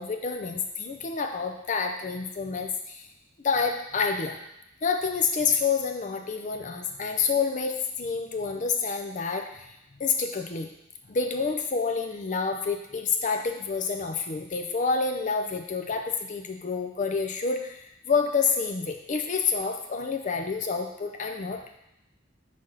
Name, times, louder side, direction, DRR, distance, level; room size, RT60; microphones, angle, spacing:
voice 1, 0.0-3.1 3.4-4.4 4.8-9.7 10.0-10.7 11.1-21.8, left 5 dB, 40° left, 4 dB, 0.5 m, -28 dB
5.3 x 3.4 x 5.5 m, 0.82 s
head